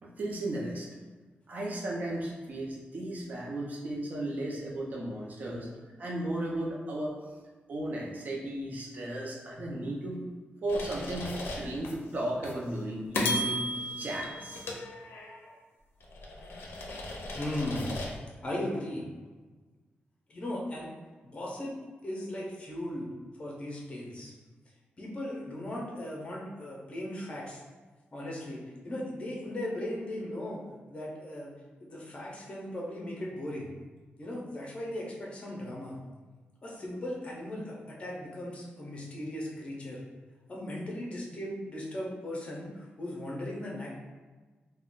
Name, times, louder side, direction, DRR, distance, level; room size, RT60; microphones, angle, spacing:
voice 1, 0.0-0.9 1.5-5.7 6.0-7.1 7.7-10.2 10.6-13.7 14.0-14.6, right 1 dB, 45° right, -3 dB, 0.6 m, -35 dB
sound 1, 10.7-11.9 12.4-12.6 13.1-15.5 16.0-18.2, left 1 dB, 85° left, 0.5 m, -35 dB
voice 2, 17.3-17.9 18.4-19.1 20.3-20.9 21.3-21.7 22.0-23.1 23.4-24.3 25.0-27.6 28.1-30.6 30.9-31.5 31.8-33.7 34.2-35.9 36.6-40.0 40.5-43.9, left 1 dB, 30° left, -3 dB, 0.6 m, -37 dB
2.3 x 2.1 x 3.6 m, 1.3 s
wide cardioid pair, 145°, 4 cm